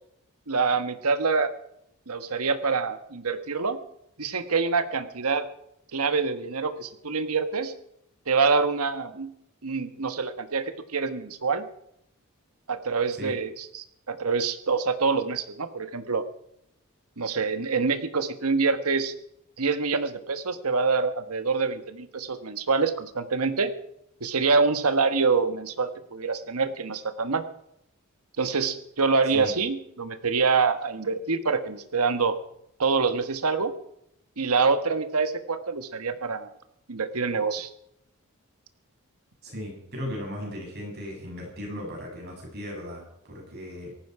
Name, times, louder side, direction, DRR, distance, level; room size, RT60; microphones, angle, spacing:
voice 1, 0.5-1.5 2.1-3.8 4.2-5.5 5.9-7.7 8.3-9.3 9.6-11.7 12.7-16.2 17.2-19.1 19.6-23.7 24.2-27.4 28.4-32.3 32.8-33.7 34.4-36.5 36.9-37.7, right 4 dB, 85° right, 10 dB, 1.3 m, -26 dB
voice 2, 39.4-43.9, equal, 45° right, -1 dB, 7.8 m, -37 dB
18.0 x 14.5 x 4.8 m, 0.77 s
head